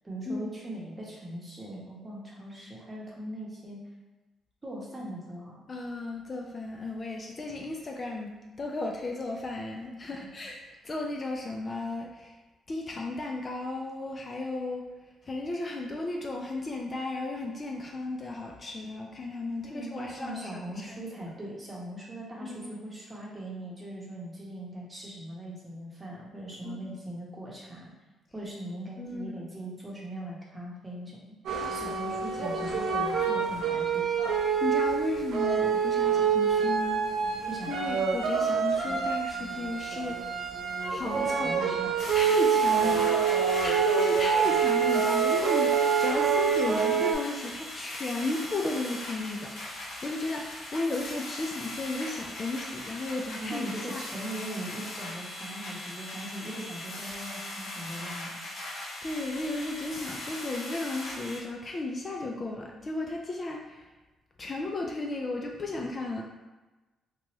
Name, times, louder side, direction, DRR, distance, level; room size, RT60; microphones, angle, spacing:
voice 1, 0.0-3.8 4.6-5.5 19.6-27.9 28.3-31.2 31.7-34.1 37.5-37.7 41.1-42.2 53.4-58.3, right 1 dB, 25° right, -4 dB, 0.9 m, -40 dB
voice 2, 5.7-8.3 8.6-12.4 12.7-14.9 15.2-21.0 22.4-22.7 26.6-27.0 29.0-29.4 34.4-40.2 40.9-41.5 42.1-54.0 59.0-63.9 64.4-66.2, left 2 dB, 35° left, 0 dB, 0.3 m, -34 dB
sound 1, 31.5-47.2, right 6 dB, 70° right, 0.5 m, -26 dB
sound 2, 42.0-61.4, left 1 dB, 60° left, 1.0 m, -40 dB
2.9 x 2.2 x 3.0 m, 1.2 s
cardioid pair, 90°, 0 cm